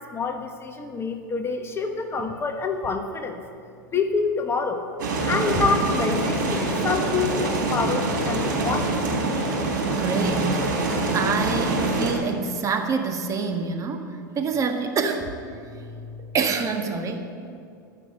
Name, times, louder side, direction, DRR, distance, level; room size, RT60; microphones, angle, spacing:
voice 1, 0.0-3.4 3.9-4.8 5.3-8.9, left 4 dB, 25° left, 6 dB, 1.2 m, -27 dB
sound 1, 5.0-12.1, right 2 dB, 75° right, 4.2 m, -25 dB
voice 2, 9.8-15.3 15.7-17.3, right 5 dB, 30° right, 4 dB, 1.5 m, -27 dB
15.5 x 6.0 x 9.8 m, 2.4 s
hypercardioid pair, 95°, 11 cm